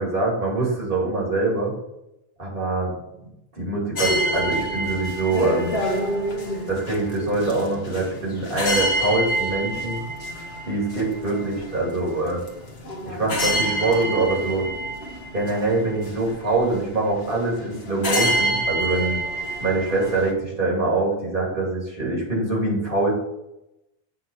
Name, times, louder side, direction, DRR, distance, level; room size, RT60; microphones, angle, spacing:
voice 1, 0.0-1.7 2.4-3.0 3.6-5.8 6.7-10.0 10.6-12.4 13.1-14.7 15.3-19.2 19.6-23.1, right 2 dB, 60° right, -4 dB, 2.9 m, -24 dB
sound 1, 4.0-20.3, right 1 dB, 80° left, 1.6 m, -28 dB
7.9 x 4.5 x 6.2 m, 0.86 s
omnidirectional pair, 1.0 m